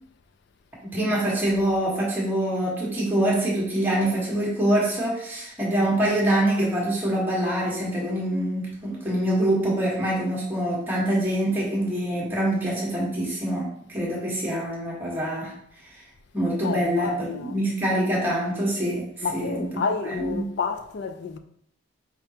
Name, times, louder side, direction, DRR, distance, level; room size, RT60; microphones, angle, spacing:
voice 1, 0.9-15.5 15.8-16.0 16.3-20.4, right 1 dB, 10° right, 1.1 m, -25 dB
voice 2, 16.6-17.5 19.2-21.4, left 5 dB, 55° left, 0.3 m, -30 dB
4.7 x 3.5 x 2.8 m
head